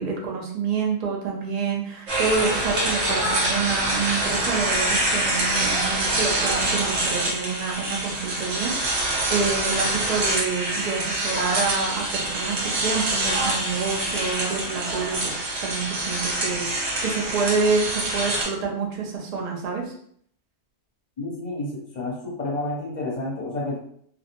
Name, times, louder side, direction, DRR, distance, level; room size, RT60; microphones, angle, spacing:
voice 1, 0.0-15.3 15.6-19.9, right 4 dB, 50° right, -1 dB, 0.5 m, -27 dB
sound 1, 2.1-18.4, right 1 dB, 70° right, 1.2 m, -25 dB
voice 2, 21.2-23.8, left 2 dB, 40° left, -5 dB, 0.9 m, -30 dB
2.5 x 2.1 x 2.8 m, 0.64 s
omnidirectional pair, 1.3 m